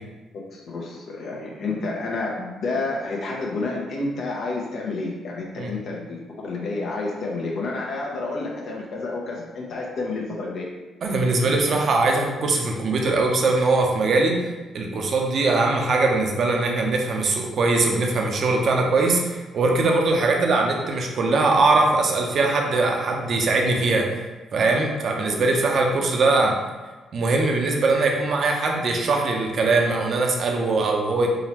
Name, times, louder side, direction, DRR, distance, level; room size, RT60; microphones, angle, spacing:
voice 1, 0.5-10.7 25.3-25.4, left 3 dB, 65° left, -2 dB, 0.7 m, -30 dB
voice 2, 11.0-14.4 14.7-24.1 24.5-26.6 27.1-31.3, right 3 dB, 55° right, 1 dB, 0.7 m, -21 dB
3.9 x 3.0 x 2.9 m, 1.2 s
cardioid pair, 90°, 0 cm